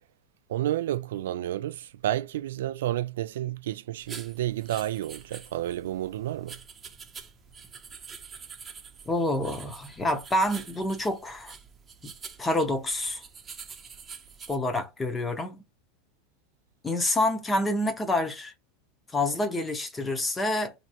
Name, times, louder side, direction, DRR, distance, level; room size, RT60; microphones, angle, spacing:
voice 1, 0.5-6.6, right 13 dB, 85° right, 0.3 m, -30 dB
sound 1, 4.0-14.6, right 6 dB, 20° right, 0.7 m, -46 dB
voice 2, 9.1-11.5 12.0-12.1 12.4-13.2 14.5-15.6 16.8-18.5 19.1-20.7, left 1 dB, 15° left, 0.8 m, -27 dB
4.3 x 2.8 x 2.9 m
supercardioid pair, 130°, 0 cm